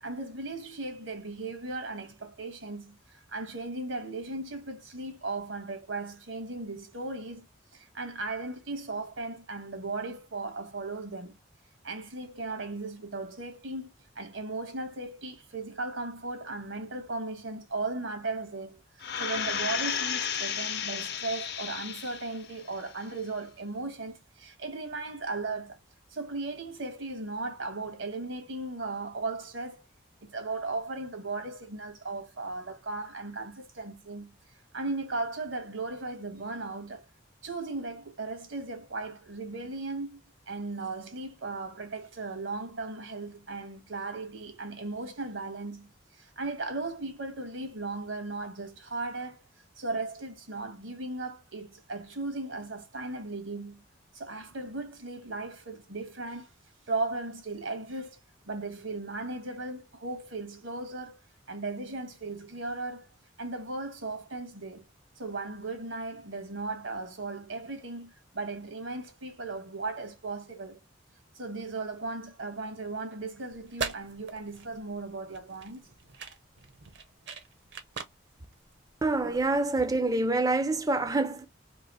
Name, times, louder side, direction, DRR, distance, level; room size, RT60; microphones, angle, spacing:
voice 1, 0.0-7.4 7.7-11.4 11.8-18.8 19.2-25.8 26.1-29.8 30.2-34.3 34.7-37.0 37.4-40.2 40.5-49.4 49.8-53.8 54.1-56.5 56.9-58.2 58.5-61.2 61.5-63.1 63.4-64.9 65.2-70.8 71.3-75.8, right 3 dB, 75° right, 1.3 m, -37 dB
sound 1, 19.0-22.4 22.9-23.0, left 8 dB, 55° left, 0.6 m, -33 dB
Opening and closing a plastic container full of bubblegum, 73.5-79.5, right 5 dB, 55° right, 0.7 m, -41 dB
voice 2, 79.0-81.5, right 2 dB, 20° right, 0.4 m, -26 dB
3.0 x 2.9 x 4.0 m
head